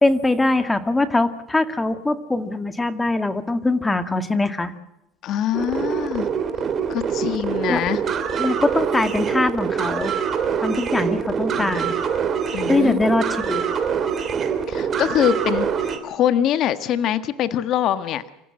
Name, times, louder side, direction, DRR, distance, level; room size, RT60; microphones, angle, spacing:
voice 1, 0.0-4.7 7.7-7.8 8.4-10.1 10.6-11.9 12.7-13.6, left 2 dB, 10° left, 10 dB, 2.1 m, -22 dB
voice 2, 5.2-6.3 6.9-8.0 11.4-11.9 12.5-13.0 14.7-18.2, left 10 dB, 50° left, 12 dB, 1.6 m, -24 dB
sound 1, 5.5-16.0, right 7 dB, 35° right, 3.4 m, -24 dB
27.0 x 15.0 x 7.7 m, 0.88 s
supercardioid pair, 115°, 0 cm